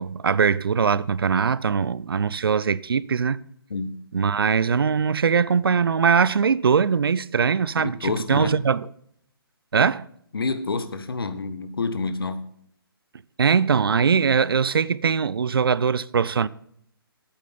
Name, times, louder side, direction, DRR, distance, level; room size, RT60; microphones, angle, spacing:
voice 1, 0.0-3.4 4.1-8.9 9.7-10.1 13.4-16.5, right 6 dB, 70° right, 0.4 m, -21 dB
voice 2, 7.8-8.5 10.3-12.4, left 4 dB, 70° left, 1.1 m, -28 dB
8.7 x 8.2 x 5.6 m
figure-of-eight pair, 135°, 13 cm